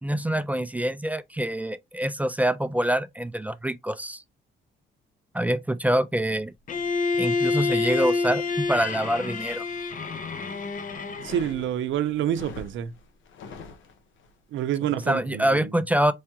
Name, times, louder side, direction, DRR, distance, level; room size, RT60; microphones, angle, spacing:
voice 1, 0.0-4.2 5.3-6.5 7.2-9.6 15.1-16.1, right 1 dB, 10° right, 0.3 m, -25 dB
Bowed string instrument, 6.7-11.6, left 4 dB, 40° left, 0.7 m, -28 dB
sound 1, 11.1-14.3, left 3 dB, 75° left, 0.8 m, -44 dB
voice 2, 11.2-12.9 14.5-15.7, right 10 dB, 75° right, 0.6 m, -28 dB
4.7 x 2.2 x 2.9 m
cardioid pair, 90°, 20 cm